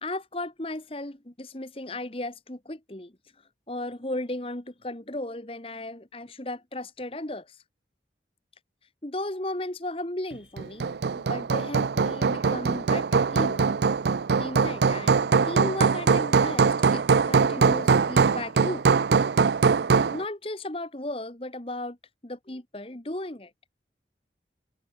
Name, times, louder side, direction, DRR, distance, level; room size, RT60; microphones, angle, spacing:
voice 1, 0.0-3.1 3.7-7.6 9.0-13.6 14.4-18.9 20.1-22.0 22.2-23.5, left 1 dB, 30° left, 1.5 m, -35 dB
Hammer, 10.6-20.2, right 5 dB, 75° right, 0.5 m, -22 dB
head